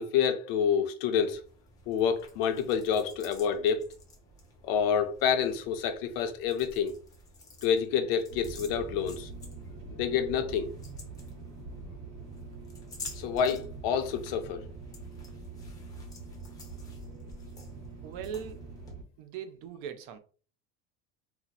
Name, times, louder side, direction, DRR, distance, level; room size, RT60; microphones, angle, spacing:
voice 1, 0.0-1.4 1.9-3.9 4.6-6.9 7.6-9.3 9.9-10.7 13.2-14.6, left 7 dB, 75° left, 0.6 m, -28 dB
sound 1, 1.3-18.9, left 2 dB, 10° left, 0.6 m, -51 dB
sound 2, 8.3-19.0, right 3 dB, 65° right, 1.2 m, -44 dB
voice 2, 18.0-18.8 19.2-20.2, right 8 dB, 45° right, 0.4 m, -40 dB
2.8 x 2.0 x 3.9 m
cardioid pair, 170°, 29 cm